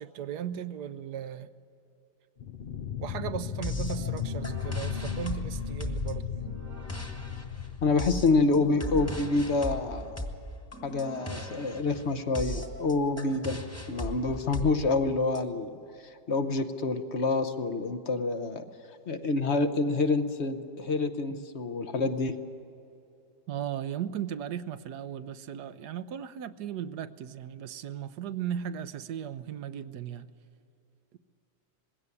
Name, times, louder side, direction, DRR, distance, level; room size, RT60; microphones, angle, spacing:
voice 1, 0.0-1.5 3.0-6.6 21.3-21.4 23.5-30.3, right 9 dB, 70° right, 13 dB, 1.2 m, -37 dB
sound 1, 2.4-8.8, left 8 dB, 70° left, 0.5 m, -36 dB
sound 2, 3.6-15.4, equal, 10° left, 1.4 m, -38 dB
voice 2, 7.8-10.3 10.8-13.6 13.9-15.7 16.3-18.6 19.1-22.3, left 3 dB, 50° left, 9 dB, 1.0 m, -27 dB
20.5 x 16.5 x 9.7 m, 2.7 s
omnidirectional pair, 1.9 m